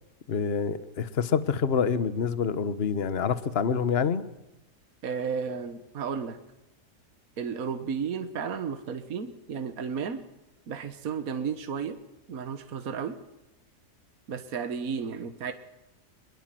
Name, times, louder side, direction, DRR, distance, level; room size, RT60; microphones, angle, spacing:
voice 1, 0.3-4.2, left 6 dB, 40° left, 13 dB, 1.3 m, -27 dB
voice 2, 5.0-6.4 7.4-10.2 10.7-12.0 12.3-13.2 14.3-15.5, right 6 dB, 60° right, 8 dB, 1.7 m, -33 dB
23.5 x 21.5 x 7.7 m, 0.94 s
omnidirectional pair, 1.7 m